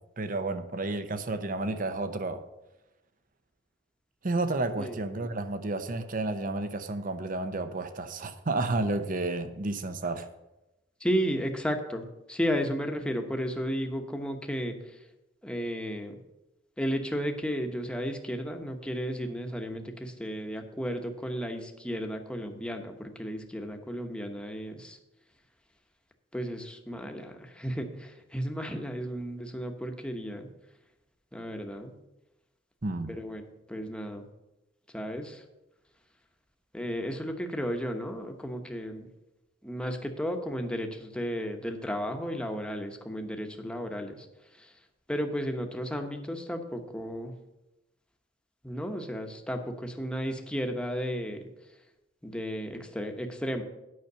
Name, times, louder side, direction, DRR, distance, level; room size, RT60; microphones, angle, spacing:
voice 1, 0.2-2.4 4.2-10.3 32.8-33.1, right 2 dB, 50° right, 10 dB, 0.7 m, -31 dB
voice 2, 11.0-15.1 15.4-16.1 16.8-25.0 26.3-30.5 31.3-32.0 33.1-34.3 34.9-35.4 36.7-39.1 39.6-44.7 45.1-47.3 48.6-51.4 52.2-53.6, equal, 5° left, 4 dB, 1.0 m, -33 dB
9.6 x 5.8 x 6.7 m, 0.96 s
head